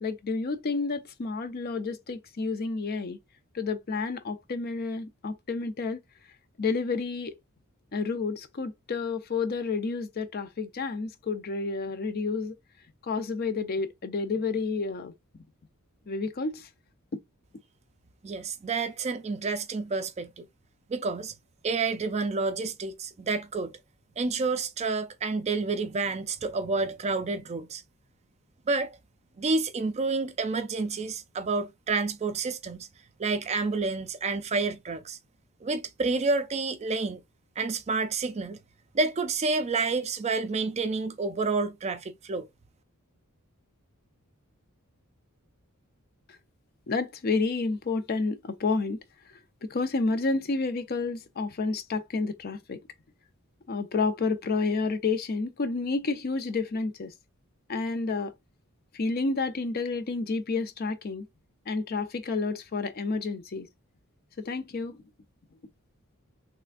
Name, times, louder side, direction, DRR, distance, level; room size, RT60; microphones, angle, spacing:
voice 1, 0.0-3.2 3.5-6.0 6.6-7.3 7.9-12.5 13.0-15.1 16.1-16.7 46.9-49.0 49.6-52.8 53.7-57.1 57.7-58.3 58.9-61.3 61.7-63.7 64.4-65.0, left 4 dB, 45° left, 0.5 m, -30 dB
voice 2, 18.2-20.5 20.9-21.3 21.6-23.8 24.2-27.8 28.7-29.0 29.4-32.9 33.2-35.2 35.6-37.2 37.6-38.6 38.9-42.5, right 3 dB, 30° right, 0.4 m, -29 dB
3.6 x 3.3 x 2.5 m
head